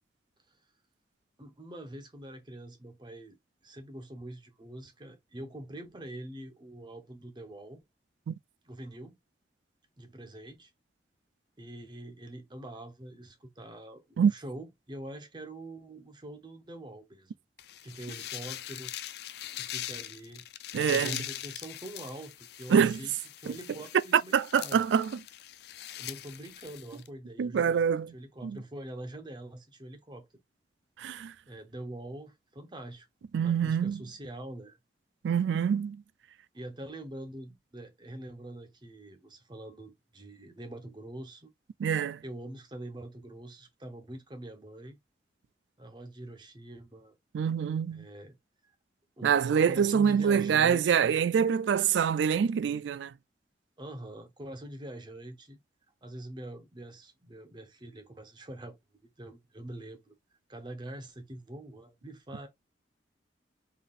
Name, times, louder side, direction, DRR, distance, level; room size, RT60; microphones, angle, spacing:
voice 1, 1.4-3.4 3.6-7.8 8.6-9.2 10.0-10.7 11.6-17.4 17.8-18.9 19.5-20.4 20.9-24.8 26.0-30.3 31.5-33.1 33.4-34.8 36.5-41.5 42.2-45.0 45.8-47.2 47.9-48.4 48.6-48.7 49.2-49.4 49.7-51.0 53.8-55.6 56.0-58.8 59.2-60.1 60.5-62.5, right 1 dB, 25° right, 0.8 m, -44 dB
sound 1, 17.6-27.1, left 13 dB, 65° left, 0.4 m, -42 dB
voice 2, 20.7-21.1 22.7-23.0 24.1-25.2 27.4-28.1 28.4-28.6 31.0-31.3 33.3-34.0 35.2-36.0 41.8-42.2 47.3-48.1 49.2-53.1, right 7 dB, 80° right, 0.3 m, -25 dB
3.8 x 3.5 x 2.4 m
head